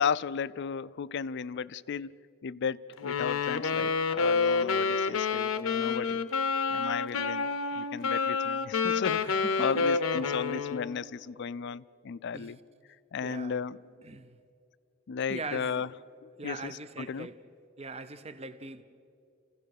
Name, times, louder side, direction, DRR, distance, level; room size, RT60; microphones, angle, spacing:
voice 1, 0.0-2.2 2.4-6.2 6.7-7.5 7.8-12.6 13.1-13.8 15.1-15.9 16.2-17.3, left 6 dB, 60° left, 0.4 m, -34 dB
Wind instrument woodwind instrument, 3.0-11.0, left 5 dB, 85° left, 0.8 m, -28 dB
voice 2, 9.2-9.9 10.2-10.4 12.3-12.5 13.2-13.6 14.0-14.4 15.3-15.9 16.4-17.4 17.8-18.8, right 3 dB, 30° right, 0.7 m, -41 dB
27.5 x 16.0 x 6.6 m
head